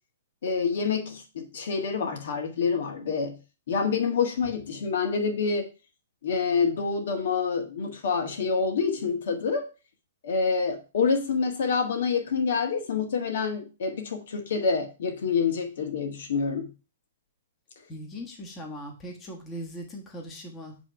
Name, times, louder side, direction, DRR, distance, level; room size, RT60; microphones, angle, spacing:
voice 1, 0.4-3.4 3.7-5.7 6.2-9.6 10.2-16.7, left 5 dB, 70° left, 5 dB, 1.6 m, -27 dB
voice 2, 17.9-20.8, equal, 15° left, 0 dB, 1.4 m, -39 dB
7.8 x 3.1 x 5.7 m, 0.33 s
hypercardioid pair, 155°, 0 cm